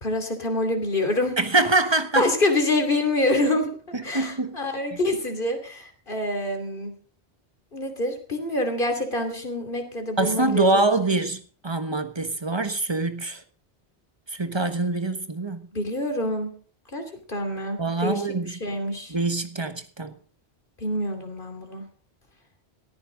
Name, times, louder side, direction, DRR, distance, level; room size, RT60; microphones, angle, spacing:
voice 1, 0.0-1.4 2.2-3.7 4.0-6.9 7.7-10.7 15.7-16.5 16.9-17.0 17.3-18.2 18.5-19.1 20.8-21.8, left 1 dB, 55° left, 3.1 m, -26 dB
voice 2, 1.4-2.3 3.9-4.6 4.9-5.0 10.2-13.4 14.3-15.7 17.8-18.6 19.1-20.1, right 2 dB, 25° right, 1.3 m, -24 dB
18.0 x 14.0 x 3.9 m
omnidirectional pair, 1.1 m